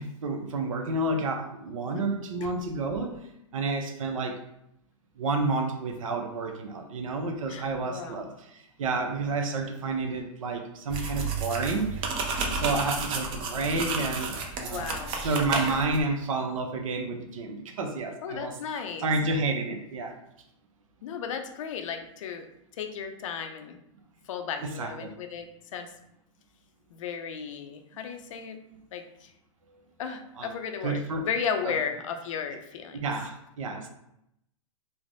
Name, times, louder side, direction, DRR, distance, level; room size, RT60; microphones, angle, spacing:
voice 1, 0.0-4.4 5.2-12.1 12.5-14.9 15.2-18.6 19.0-20.2 24.8-25.1 28.7-28.8 30.4-30.5 30.8-31.3 31.6-31.7 32.9-33.9, right 3 dB, 85° right, 4 dB, 0.5 m, -30 dB
voice 2, 7.5-8.2 14.6-15.2 18.2-19.1 21.0-22.5 22.8-23.8 24.3-25.9 26.9-28.6 28.9-29.3 30.0-33.0, left 7 dB, 75° left, 6 dB, 0.4 m, -35 dB
sound 1, 10.9-16.0, right 4 dB, 30° right, 0.5 m, -31 dB
3.2 x 2.0 x 2.5 m, 0.80 s
hypercardioid pair, 125°, 17 cm